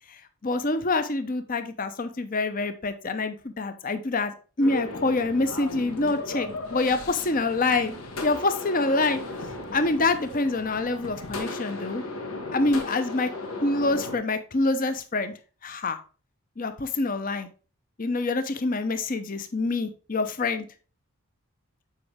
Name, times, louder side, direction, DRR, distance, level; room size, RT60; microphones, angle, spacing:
voice 1, 0.1-7.9 8.2-9.2 9.7-12.0 12.5-13.3 13.6-15.3 15.6-16.0 16.6-17.5 18.0-20.7, left 3 dB, 40° left, 10 dB, 0.7 m, -26 dB
sound 1, 4.6-14.2, left 2 dB, 80° left, 1.3 m, -36 dB
7.5 x 4.8 x 3.5 m, 0.36 s
head